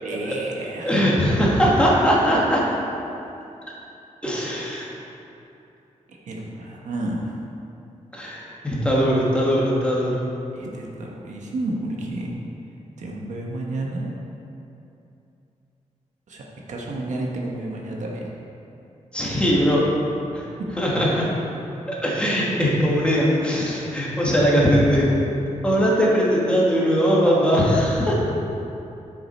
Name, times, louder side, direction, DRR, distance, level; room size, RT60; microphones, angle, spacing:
voice 1, 0.0-1.0 6.1-7.4 10.5-12.4 13.0-14.1 16.3-18.3 23.6-23.7, right 2 dB, 70° right, -2 dB, 1.4 m, -31 dB
voice 2, 0.8-2.6 4.2-4.9 8.1-10.2 19.1-19.8 20.3-20.5 20.8-21.3 21.9-25.1 25.6-28.2, equal, 10° left, -5 dB, 1.7 m, -20 dB
10.5 x 6.7 x 4.4 m, 2.8 s
wide cardioid pair, 160°, 13 cm